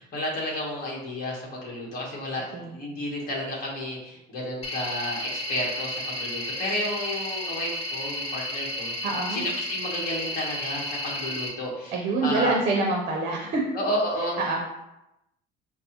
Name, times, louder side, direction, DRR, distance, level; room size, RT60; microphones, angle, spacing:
voice 1, 0.0-8.9 9.3-11.9 12.2-12.6 13.7-14.4, left 1 dB, 50° left, -3 dB, 1.1 m, -31 dB
sound 1, 4.6-11.5, left 1 dB, 30° left, 0.8 m, -32 dB
voice 2, 9.0-9.4 11.9-13.8 14.4-14.6, right 3 dB, 35° right, 0 dB, 0.6 m, -26 dB
5.1 x 2.0 x 2.9 m, 0.90 s
cardioid pair, 130°, 20 cm